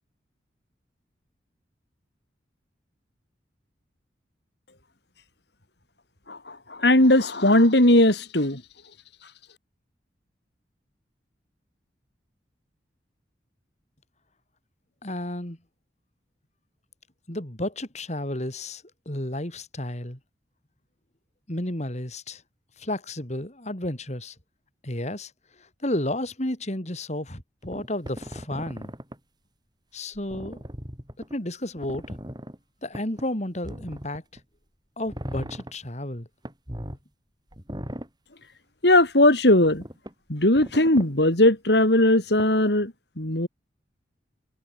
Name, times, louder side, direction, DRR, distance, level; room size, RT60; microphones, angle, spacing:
voice 1, 6.3-8.6 38.8-39.8 40.3-43.5, left 1 dB, 65° left, 4.3 m, -19 dB
voice 2, 15.0-15.6 17.3-20.2 21.5-22.4 22.8-24.4 24.8-25.3 25.6-28.9 29.9-30.6 31.3-32.2 32.8-34.2 35.0-36.3, left 1 dB, 40° left, 3.7 m, -32 dB
sound 1, 27.6-29.2 30.1-31.3 31.8-32.6 32.9-33.2 33.6-34.4 35.1-35.7 36.4-37.0 37.5-38.1 39.6-40.1 40.6-41.1 42.4-42.5, equal, 25° right, 5.8 m, -38 dB
head